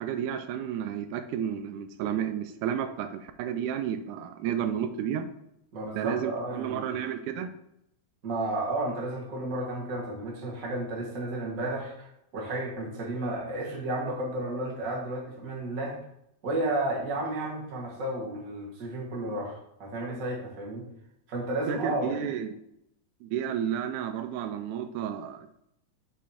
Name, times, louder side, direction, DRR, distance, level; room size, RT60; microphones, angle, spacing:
voice 1, 0.0-5.3 5.9-7.5 21.7-22.5 23.2-25.6, right 9 dB, 85° right, 9 dB, 2.0 m, -32 dB
voice 2, 5.7-7.0 8.2-12.1 12.3-16.0 16.4-20.8 21.3-22.1, right 2 dB, 40° right, -2 dB, 1.3 m, -32 dB
6.8 x 3.1 x 5.6 m, 0.79 s
omnidirectional pair, 3.5 m